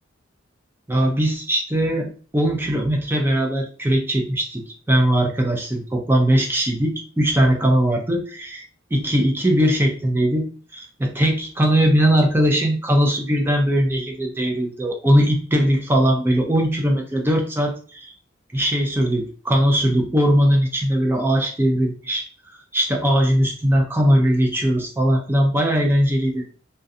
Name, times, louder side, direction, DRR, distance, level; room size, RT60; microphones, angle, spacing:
voice 1, 0.9-8.6 8.9-18.1 18.5-22.2 22.7-26.5, equal, 10° right, 2 dB, 0.4 m, -20 dB
2.4 x 2.1 x 2.6 m, 0.39 s
head